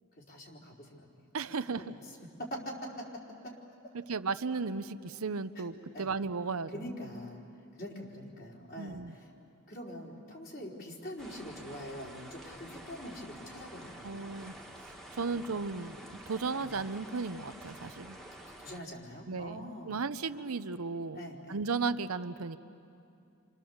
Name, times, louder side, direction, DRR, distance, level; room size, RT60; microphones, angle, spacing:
voice 1, 0.2-1.1 1.8-2.1 2.5-3.0 3.4-3.5 5.6-5.7 5.9-6.1 6.7-7.4 7.7-9.3 9.7-14.2 15.3-15.5 16.5-16.7 18.4-20.0 21.1-21.6, equal, 45° left, -2 dB, 4.2 m, -44 dB
voice 2, 1.3-2.0 3.9-6.8 8.8-9.1 14.0-14.5 15.1-18.2 19.3-21.2 21.5-22.6, right 4 dB, 90° right, 12 dB, 0.8 m, -35 dB
sound 1, 11.2-18.8, right 1 dB, ahead, 1.7 m, -49 dB
29.0 x 26.0 x 7.2 m, 2.7 s
head